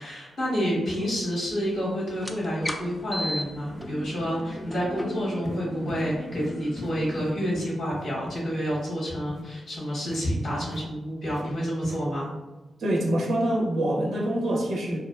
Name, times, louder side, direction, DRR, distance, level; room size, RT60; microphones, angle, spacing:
voice 1, 0.0-12.3, equal, 75° left, -5 dB, 1.1 m, -29 dB
sound 1, 2.1-7.3, left 1 dB, 20° left, 0.4 m, -36 dB
sound 2, 3.3-3.4 3.7-3.9 4.2-4.4 4.7-4.8 5.4-5.6 5.9-6.1 6.3-6.5 6.8-6.9 7.2-8.4 8.7-8.9 9.3-9.4 10.1-10.2 10.6-10.9 11.3-11.4 11.8-12.0, equal, 15° right, 0.6 m, -39 dB
voice 2, 12.8-15.0, right 1 dB, 75° right, -3 dB, 0.5 m, -26 dB
2.7 x 2.3 x 2.3 m, 1.1 s
supercardioid pair, 40°, 0 cm